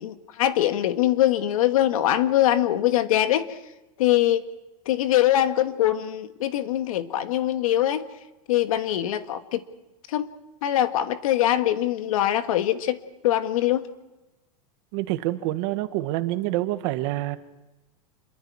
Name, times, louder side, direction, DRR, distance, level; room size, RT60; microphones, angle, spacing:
voice 1, 0.0-3.5 4.0-4.4 4.8-8.0 8.5-9.6 10.1-10.3 10.6-13.0 13.2-13.9, left 12 dB, 80° left, 10 dB, 1.5 m, -23 dB
voice 2, 14.9-17.4, right 16 dB, 55° right, 10 dB, 1.6 m, -27 dB
28.5 x 22.5 x 4.7 m, 1.0 s
supercardioid pair, 135°, 18 cm